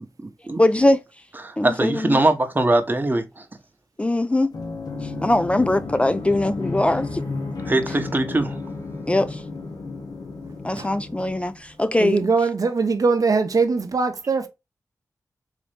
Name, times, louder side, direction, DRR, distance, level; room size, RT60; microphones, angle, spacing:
voice 1, 0.6-1.0 1.6-2.2 4.0-4.5 5.0-7.3 9.1-9.4 10.6-12.3, left 1 dB, 15° left, 0.3 m, -21 dB
voice 2, 1.4-3.4 7.7-8.6, right 2 dB, 30° right, 0.9 m, -21 dB
sound 1, 4.5-12.1, left 3 dB, 80° left, 1.2 m, -32 dB
voice 3, 12.0-14.5, right 4 dB, 60° right, 0.7 m, -21 dB
4.1 x 2.9 x 3.3 m
cardioid pair, 55°, 7 cm